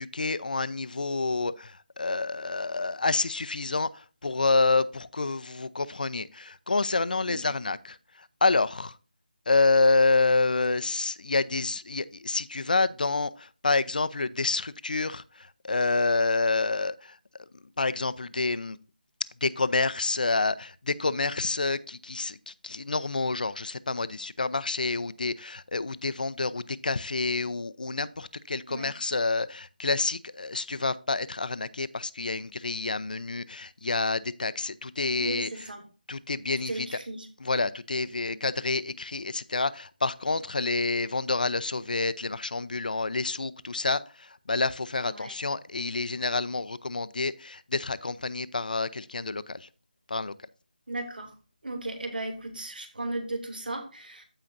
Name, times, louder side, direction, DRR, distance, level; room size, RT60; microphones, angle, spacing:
voice 1, 0.0-9.0 9.5-17.2 17.6-18.8 19.4-35.7 36.1-37.0 37.4-49.7 50.1-50.3, left 3 dB, 65° left, 0.6 m, -28 dB
voice 2, 35.2-35.8 36.7-37.3 38.3-38.4 45.1-45.4 50.9-51.3 51.6-54.2, right 2 dB, 85° right, 2.7 m, -36 dB
14.5 x 5.0 x 2.6 m
figure-of-eight pair, 170°, 5 cm